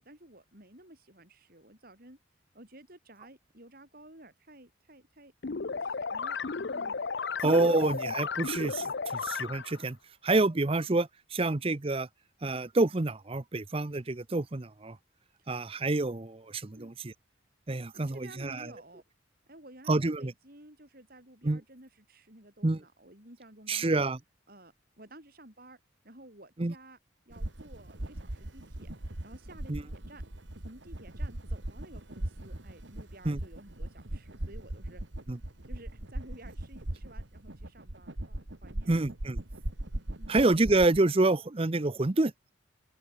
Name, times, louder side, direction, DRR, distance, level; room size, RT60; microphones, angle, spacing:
voice 1, 0.0-2.2 2.5-5.3 5.8-6.4 6.7-7.0 11.4-11.6 15.4-15.5 16.7-16.9 18.1-19.0 19.5-24.0 24.5-27.0 27.3-28.9 29.2-30.2 30.6-35.0 35.7-39.1 40.2-40.4, right 1 dB, 50° right, 8.0 m, -53 dB
sound 1, 5.4-9.8, left 5 dB, 60° left, 0.7 m, -34 dB
voice 2, 7.4-10.0 10.2-12.1 12.4-15.0 15.5-17.1 17.7-18.7 19.9-20.3 21.4-21.6 22.6-22.8 23.7-24.2 26.6-26.7 29.7-29.8 33.2-33.4 35.3-35.4 38.9-39.4 40.3-42.3, right 2 dB, 30° right, 0.7 m, -27 dB
sound 2, 27.3-41.0, right 1 dB, 65° right, 2.1 m, -39 dB
open air
head